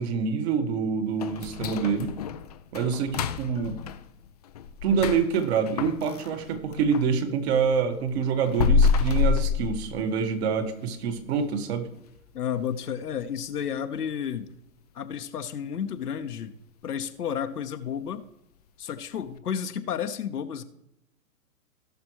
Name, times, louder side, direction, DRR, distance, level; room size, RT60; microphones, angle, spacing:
voice 1, 0.0-2.1 2.7-3.8 4.8-11.9, right 6 dB, 45° right, 8 dB, 1.7 m, -26 dB
sound 1, 1.2-7.1 7.5-10.4 10.7-10.8 11.3-11.4 11.9-12.3 12.6-12.7 13.2-13.3, left 5 dB, 30° left, 0.4 m, -28 dB
voice 2, 12.3-14.5 14.9-16.5 16.8-18.3 18.8-20.6, left 8 dB, 85° left, 6 dB, 1.1 m, -31 dB
17.5 x 6.0 x 3.1 m, 0.84 s
hypercardioid pair, 130°, 45 cm